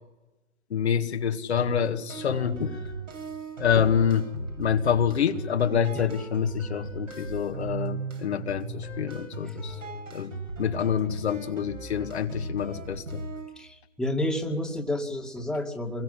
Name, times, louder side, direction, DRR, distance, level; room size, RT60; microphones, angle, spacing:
voice 1, 0.7-2.8 3.6-4.3 4.6-9.8 10.1-13.2, left 8 dB, 60° left, 5 dB, 2.0 m, -27 dB
sound 1, 1.6-13.5, right 2 dB, 80° right, 7.7 m, -37 dB
voice 2, 13.6-16.0, left 1 dB, ahead, 2 dB, 2.2 m, -30 dB
27.0 x 22.0 x 10.0 m, 1.1 s
figure-of-eight pair, 130°, 38 cm